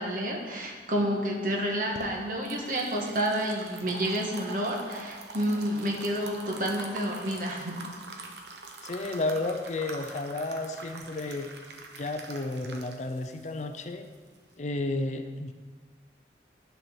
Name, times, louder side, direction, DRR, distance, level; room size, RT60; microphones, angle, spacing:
voice 1, 0.0-7.8, equal, 50° right, 0 dB, 1.4 m, -30 dB
sound 1, 1.6-14.5, right 3 dB, 75° right, 1.0 m, -44 dB
voice 2, 8.8-11.5 12.0-14.1 14.6-15.5, left 2 dB, 40° left, 7 dB, 0.5 m, -32 dB
11.0 x 4.5 x 6.4 m, 1.5 s
head